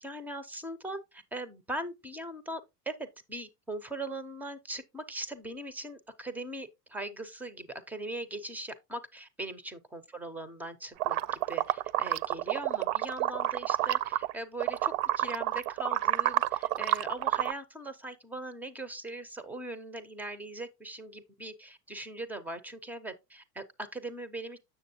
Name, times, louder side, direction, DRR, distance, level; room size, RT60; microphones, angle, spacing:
voice 1, 0.0-11.2 11.5-24.6, right 1 dB, 5° right, 0.3 m, -40 dB
sound 1, 11.0-14.3 14.6-17.5, right 14 dB, 60° right, 0.5 m, -29 dB
7.7 x 6.5 x 2.7 m
hypercardioid pair, 110°, 49 cm